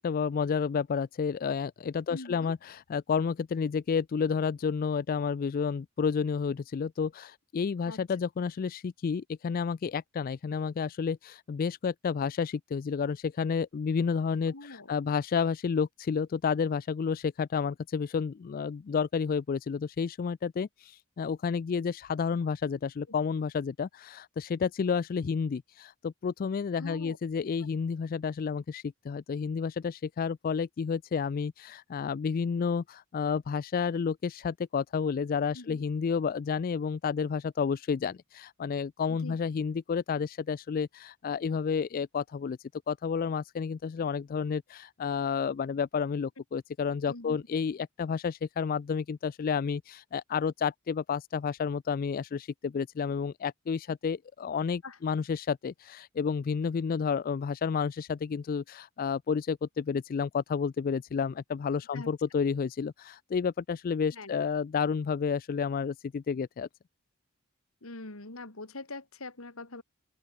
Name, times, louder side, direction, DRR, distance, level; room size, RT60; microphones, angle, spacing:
voice 1, 0.0-66.7, left 6 dB, 40° left, 0.3 m, -31 dB
voice 2, 2.1-2.5 7.9-8.0 14.5-14.9 26.8-27.2 35.5-35.8 39.1-39.4 47.1-47.4 54.8-55.0 61.9-62.1 64.1-64.5 67.8-69.8, left 2 dB, 70° left, 2.8 m, -43 dB
open air
head